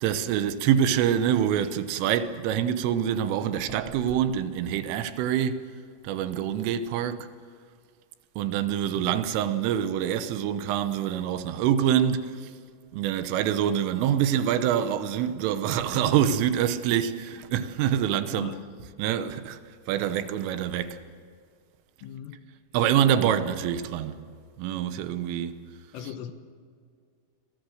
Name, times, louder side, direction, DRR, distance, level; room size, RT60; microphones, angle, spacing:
voice 1, 0.0-5.7 6.0-7.3 8.4-12.5 12.9-18.6 19.0-19.6 19.9-21.0 22.7-24.2 24.6-25.6, right 9 dB, 90° right, 3.6 m, -25 dB
voice 2, 18.3-18.6 22.0-22.5 25.9-26.3, left 10 dB, 85° left, 3.8 m, -39 dB
28.5 x 21.5 x 6.6 m
omnidirectional pair, 5.6 m